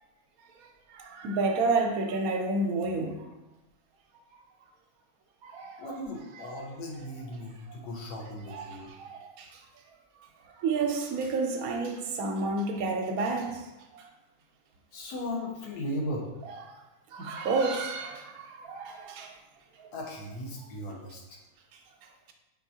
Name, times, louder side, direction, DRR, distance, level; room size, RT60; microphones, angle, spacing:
voice 1, 0.9-3.2 5.4-6.0 6.4-6.5 8.5-9.5 10.6-13.6 13.9-14.1 16.5-16.6 17.1-19.3, right 3 dB, 75° right, 1.0 m, -30 dB
voice 2, 5.8-8.9 14.9-16.3 19.9-21.2, left 1 dB, 90° left, 1.4 m, -37 dB
4.6 x 3.5 x 2.7 m
omnidirectional pair, 1.6 m